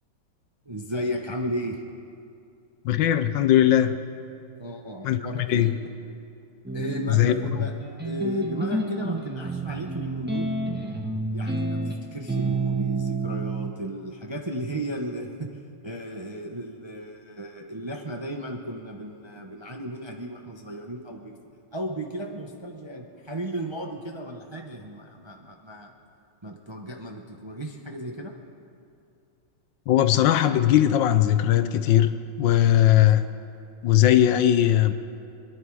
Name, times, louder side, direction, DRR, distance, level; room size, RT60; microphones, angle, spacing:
voice 1, 0.6-1.8 4.6-5.7 6.7-7.7 8.0-10.5 11.3-15.5 15.8-21.4 21.7-25.9 26.4-28.3, equal, 45° right, 1 dB, 0.3 m, -34 dB
voice 2, 2.8-4.0 5.0-5.8 7.1-7.3 29.9-33.2 33.8-34.9, left 12 dB, 70° left, 11 dB, 1.3 m, -19 dB
sound 1, 6.6-13.7, right 2 dB, 5° right, 1.0 m, -29 dB
26.5 x 11.0 x 4.7 m, 2.5 s
omnidirectional pair, 2.3 m